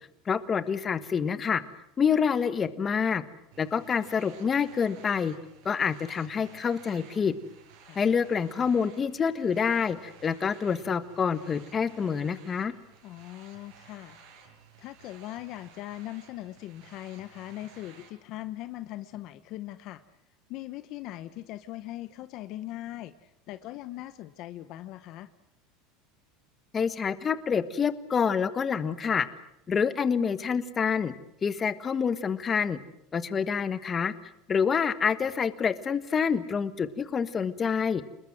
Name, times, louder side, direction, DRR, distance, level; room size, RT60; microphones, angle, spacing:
voice 1, 0.3-1.6 2.0-3.2 3.6-5.3 5.6-7.3 7.9-12.7 26.7-29.3 29.7-31.1 31.4-32.8 33.1-34.1 34.5-38.0, left 6 dB, 25° left, 12 dB, 1.5 m, -27 dB
sound 1, 3.5-18.1, right 6 dB, 65° right, 7.2 m, -54 dB
voice 2, 13.0-14.2 14.8-20.0 20.5-25.3, left 15 dB, 50° left, 12 dB, 1.0 m, -40 dB
27.0 x 21.0 x 7.8 m, 0.81 s
supercardioid pair, 130°, 0 cm